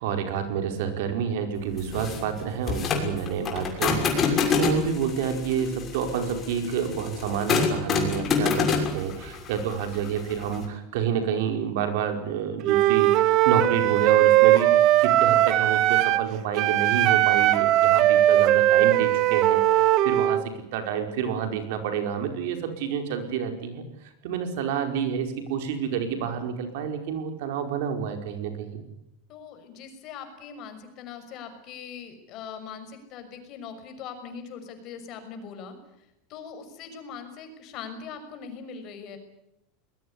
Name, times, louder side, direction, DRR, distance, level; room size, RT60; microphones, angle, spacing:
voice 1, 0.0-28.8, right 7 dB, 70° right, 6 dB, 5.0 m, -29 dB
sound 1, 1.8-10.6, left 5 dB, 30° left, 6.2 m, -27 dB
Wind instrument woodwind instrument, 12.6-16.3 16.5-20.4, right 14 dB, 45° right, 1.4 m, -19 dB
voice 2, 29.3-35.8 36.3-39.2, left 6 dB, 45° left, 8 dB, 6.2 m, -41 dB
22.0 x 21.0 x 9.8 m, 0.84 s
supercardioid pair, 135°, 0 cm